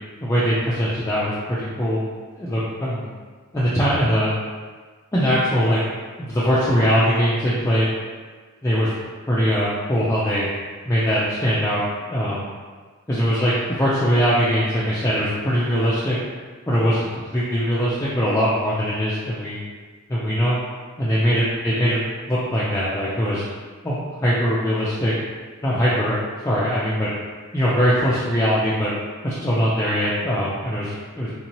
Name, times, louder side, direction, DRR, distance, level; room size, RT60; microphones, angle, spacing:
voice 1, 0.2-2.0 2.3-3.1 3.5-4.3 5.1-5.8 6.2-7.9 8.6-8.9 9.3-10.5 10.8-11.8 12.1-12.5 13.1-16.2 16.7-19.6 20.1-20.6 21.0-23.4 23.8-25.1 25.6-27.1 27.5-28.9 29.2-31.3, equal, 15° left, -8 dB, 0.4 m, -21 dB
3.6 x 2.8 x 2.9 m, 1.5 s
head